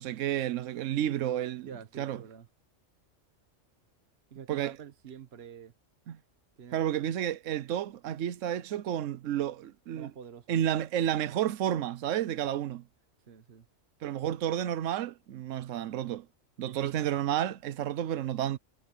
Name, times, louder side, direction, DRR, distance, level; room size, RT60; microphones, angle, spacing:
voice 1, 0.0-1.7 2.0-2.2 4.5-4.7 6.1-6.2 6.7-10.1 10.5-12.8 14.0-16.3 16.6-18.6, right 11 dB, 80° right, 1.1 m, -31 dB
voice 2, 1.6-2.5 4.3-5.7 6.6-6.9 9.9-10.7 13.3-13.6 16.6-16.9, right 7 dB, 55° right, 1.3 m, -47 dB
omnidirectional pair, 1.3 m